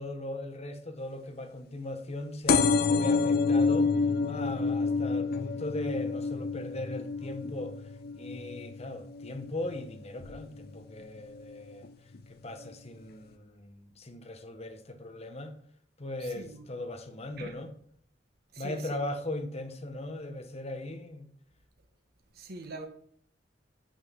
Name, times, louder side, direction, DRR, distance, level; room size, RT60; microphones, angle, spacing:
voice 1, 0.0-11.9 12.3-15.6 16.0-17.7 18.6-21.3, left 1 dB, 35° left, 1.1 m, -39 dB
sound 1, 2.5-9.7 10.2-10.7 11.5-11.6 11.8-11.9 12.1-12.2, left 4 dB, 55° left, 0.6 m, -28 dB
voice 2, 16.2-16.7 17.4-17.6 18.5-19.0 22.3-22.9, right 3 dB, 60° right, 1.1 m, -43 dB
8.1 x 6.4 x 5.4 m
head